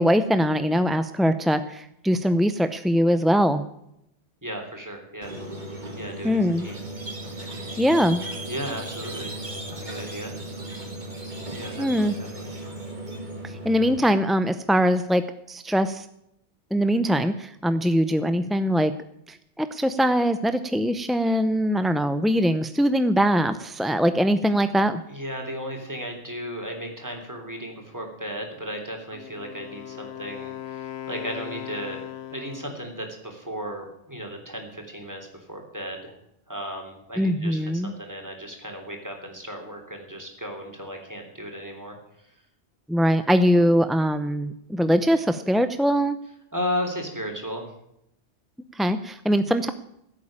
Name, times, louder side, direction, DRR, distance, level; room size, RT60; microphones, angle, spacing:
voice 1, 0.0-3.6 6.2-6.7 7.8-8.2 11.8-12.1 13.4-16.1 16.7-18.9 19.3-25.0 37.2-37.9 42.9-46.2 48.7-49.7, equal, ahead, 10 dB, 0.4 m, -22 dB
voice 2, 4.4-5.3 5.7-6.8 7.2-7.9 8.5-10.7 11.5-12.8 25.1-32.0 32.3-36.1 36.5-42.0 46.5-47.7, equal, 15° right, 2 dB, 3.5 m, -35 dB
Squeak, 5.2-14.0, right 1 dB, 45° right, 2.6 m, -36 dB
Wind instrument woodwind instrument, 29.1-33.0, left 11 dB, 75° left, 1.1 m, -38 dB
15.5 x 8.5 x 8.8 m, 0.79 s
omnidirectional pair, 1.1 m